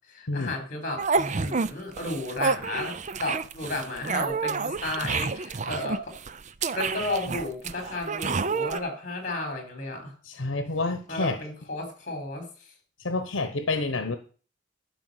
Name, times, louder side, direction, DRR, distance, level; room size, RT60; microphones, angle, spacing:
voice 1, 0.1-6.2 6.7-10.1 11.1-12.7, left 2 dB, 40° left, 5 dB, 4.0 m, -33 dB
sound 1, 1.0-1.7 2.0-8.8, right 4 dB, 40° right, 0.5 m, -29 dB
voice 2, 10.2-11.4 13.0-14.1, left 3 dB, 85° left, 9 dB, 1.1 m, -28 dB
11.5 x 5.2 x 8.0 m, 0.38 s
head